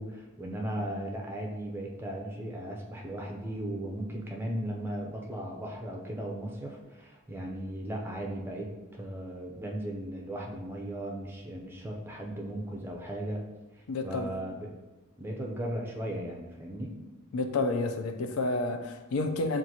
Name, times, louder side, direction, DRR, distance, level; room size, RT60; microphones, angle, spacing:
voice 1, 0.0-13.4 14.0-14.7 15.2-17.0, right 1 dB, 10° right, 0.5 m, -36 dB
voice 2, 13.9-14.3 17.3-19.6, left 2 dB, 75° left, 0.4 m, -30 dB
6.0 x 2.5 x 2.8 m
head